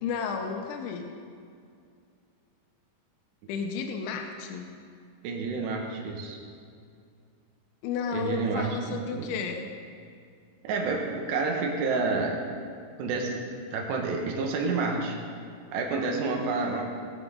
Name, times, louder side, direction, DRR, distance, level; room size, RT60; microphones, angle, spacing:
voice 1, 0.0-1.1 3.5-4.7 7.8-9.7, left 6 dB, 85° left, 4 dB, 3.1 m, -32 dB
voice 2, 5.2-6.4 8.1-9.3 10.6-12.4 13.0-13.4 13.7-15.2 15.7-16.9, right 4 dB, 70° right, 0 dB, 3.4 m, -29 dB
18.5 x 9.2 x 3.9 m, 2.3 s
omnidirectional pair, 5.4 m